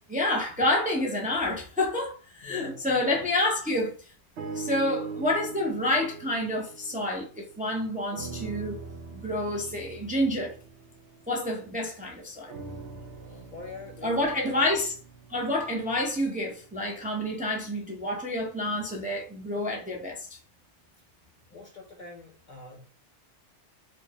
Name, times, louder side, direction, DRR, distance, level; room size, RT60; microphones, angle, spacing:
voice 1, 0.1-4.1 4.5-8.8 9.1-10.5 11.3-12.5 14.0-14.9 15.3-20.4, left 1 dB, 10° right, 0.5 m, -28 dB
voice 2, 2.4-3.2 13.2-14.2 21.5-22.8, left 3 dB, 55° left, 0.6 m, -44 dB
sound 1, 4.4-7.7 8.1-11.9 12.5-16.7 17.4-17.5, right 4 dB, 75° right, 0.8 m, -41 dB
4.4 x 2.1 x 2.9 m
omnidirectional pair, 1.2 m